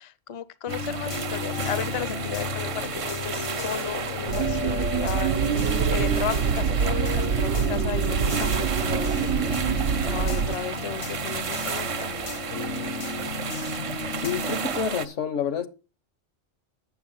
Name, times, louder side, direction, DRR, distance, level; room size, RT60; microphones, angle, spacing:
voice 1, 0.0-12.2, left 8 dB, 40° left, 0.5 m, -35 dB
sound 1, 0.7-14.8, left 6 dB, 65° left, 1.0 m, -34 dB
sound 2, 0.7-15.1, right 7 dB, 55° right, 0.3 m, -33 dB
sound 3, 4.3-10.6, right 7 dB, 80° right, 1.0 m, -25 dB
voice 2, 14.1-15.7, left 7 dB, 80° left, 1.5 m, -28 dB
8.5 x 7.1 x 5.5 m
omnidirectional pair, 1.2 m